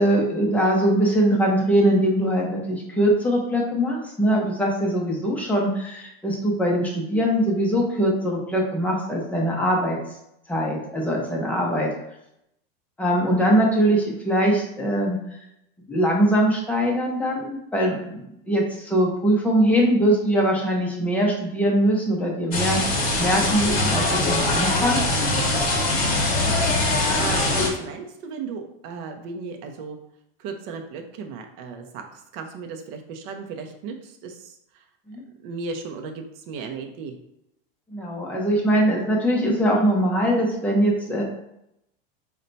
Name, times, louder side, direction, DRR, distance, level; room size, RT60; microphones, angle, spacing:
voice 1, 0.0-10.0 10.5-11.9 13.0-15.2 15.9-25.0 35.1-35.2 37.9-41.2, right 1 dB, 5° left, -2 dB, 0.5 m, -22 dB
sound 1, 22.5-27.7, left 2 dB, 30° left, 0.9 m, -22 dB
voice 2, 26.8-30.0 30.4-34.8 35.4-37.2, right 5 dB, 40° right, 4 dB, 0.5 m, -36 dB
4.1 x 2.2 x 3.9 m, 0.81 s
supercardioid pair, 160°, 30 cm